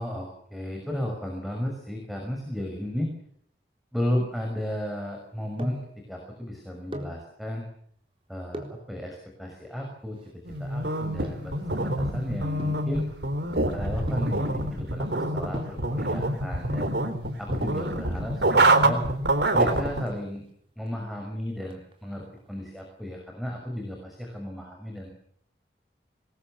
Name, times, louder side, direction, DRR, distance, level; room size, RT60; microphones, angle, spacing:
voice 1, 0.0-3.1 3.9-5.8 6.1-7.7 8.3-10.2 10.6-13.1 13.7-16.9 17.4-19.0 19.5-20.4 20.8-25.1, left 1 dB, ahead, 1 dB, 5.7 m, -34 dB
sound 1, 5.2-6.0 6.7-7.2 8.5-8.9 9.6-12.0 12.6-13.0 14.1-14.5 15.2-15.3 15.5-15.9 17.0-17.5 17.8-17.9 18.2-18.3 18.7-19.1 19.4-20.4 20.9-21.3 21.6-22.8 23.1-23.2, left 1 dB, 30° right, 4.0 m, -39 dB
sound 2, 10.4-20.0, right 2 dB, 80° right, 3.8 m, -26 dB
26.5 x 21.0 x 7.5 m, 0.65 s
head